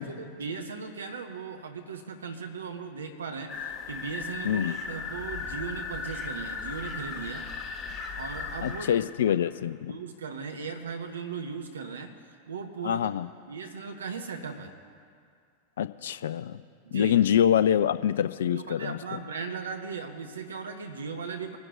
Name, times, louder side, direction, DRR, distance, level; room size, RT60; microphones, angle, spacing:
voice 1, 0.0-7.5 8.2-9.1 9.9-13.1 13.5-14.7 16.8-17.2 18.5-21.6, right 5 dB, 70° right, 5 dB, 1.0 m, -38 dB
sound 1, 3.5-9.1, left 5 dB, 20° left, 1.2 m, -37 dB
voice 2, 4.4-4.8 8.6-9.9 12.8-13.3 15.8-16.6 16.9-19.2, left 9 dB, 60° left, 14 dB, 0.4 m, -25 dB
24.0 x 10.5 x 2.6 m, 2.2 s
figure-of-eight pair, 90°, 0 cm